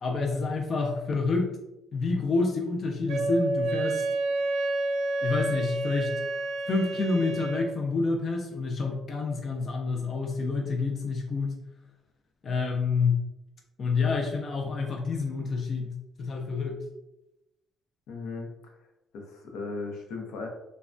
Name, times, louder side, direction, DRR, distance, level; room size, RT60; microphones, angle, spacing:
voice 1, 0.0-1.6 1.9-4.1 5.2-6.1 6.7-11.6 12.4-13.2 13.8-15.9 16.2-16.8, left 4 dB, 35° left, 2 dB, 0.3 m, -28 dB
Wind instrument woodwind instrument, 3.1-7.7, right 2 dB, 70° right, 0.3 m, -29 dB
voice 2, 18.1-18.7 19.1-20.5, left 3 dB, 90° left, 1 dB, 0.6 m, -37 dB
3.2 x 2.1 x 2.5 m, 0.91 s
cardioid pair, 170°, 0 cm